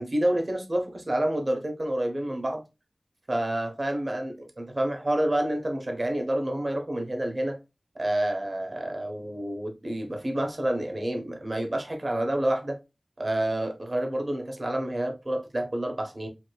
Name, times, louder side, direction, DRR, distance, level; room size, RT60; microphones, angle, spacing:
voice 1, 0.0-2.6 3.3-7.6 7.9-12.8 13.2-16.3, right 1 dB, 40° right, 1.2 m, -28 dB
5.0 x 3.6 x 2.3 m
wide cardioid pair, 70°, 0 cm